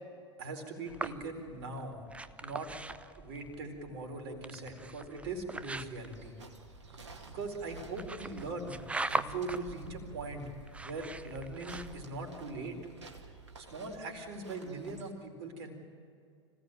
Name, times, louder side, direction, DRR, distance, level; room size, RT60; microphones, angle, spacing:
voice 1, 0.4-2.0 2.4-2.7 3.2-6.4 7.3-8.7 9.1-10.5 10.8-12.8 13.6-15.7, right 3 dB, 55° right, 2 dB, 4.4 m, -40 dB
sound 1, 0.9-12.3, right 2 dB, 10° right, 0.7 m, -42 dB
sound 2, 6.0-15.1, right 4 dB, 80° right, 2.2 m, -51 dB
25.5 x 16.5 x 9.1 m, 2.3 s
figure-of-eight pair, 90°, 15 cm